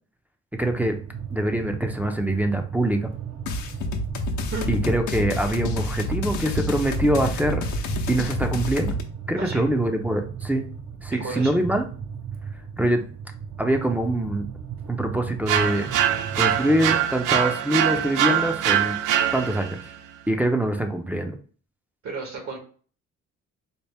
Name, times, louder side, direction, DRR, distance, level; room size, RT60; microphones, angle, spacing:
voice 1, 0.5-1.0 1.3-3.1 4.7-7.6 8.1-9.0 9.3-10.7 11.0-11.8 12.8-13.0 13.6-14.4 14.9-15.9 16.4-19.0 19.3-19.8 20.3-21.4, right 1 dB, 5° right, 5 dB, 0.5 m, -24 dB
sound 1, 0.7-16.9, right 7 dB, 45° right, 0.7 m, -36 dB
sound 2, 3.5-9.0, left 2 dB, 75° left, 0.7 m, -28 dB
voice 2, 11.1-11.5 22.0-22.6, right 3 dB, 65° right, 1 dB, 1.6 m, -32 dB
sound 3, 15.5-19.8, right 10 dB, 85° right, 0.5 m, -23 dB
4.2 x 2.0 x 3.4 m, 0.42 s
cardioid pair, 90°, 30 cm